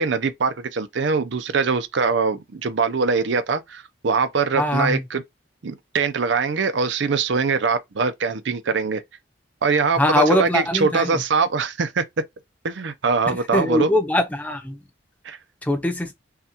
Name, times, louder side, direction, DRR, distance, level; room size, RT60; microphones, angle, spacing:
voice 1, 0.0-5.2 5.6-9.0 9.6-12.0 12.6-13.9 15.3-15.4, right 4 dB, 70° right, 0.5 m, -22 dB
voice 2, 4.6-5.0 10.0-11.2 13.3-14.8 15.6-16.1, left 1 dB, 10° left, 0.6 m, -22 dB
5.6 x 2.3 x 2.9 m
head